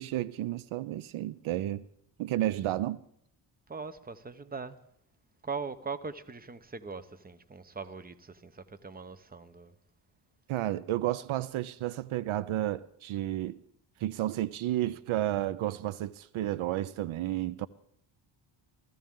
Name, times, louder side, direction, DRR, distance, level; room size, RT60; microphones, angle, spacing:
voice 1, 0.0-1.9 2.2-3.0 10.5-13.6 14.0-17.7, right 14 dB, 75° right, 0.6 m, -32 dB
voice 2, 3.7-4.8 5.4-9.7, right 4 dB, 20° right, 0.9 m, -41 dB
21.5 x 14.5 x 3.7 m
cardioid pair, 80°, 50 cm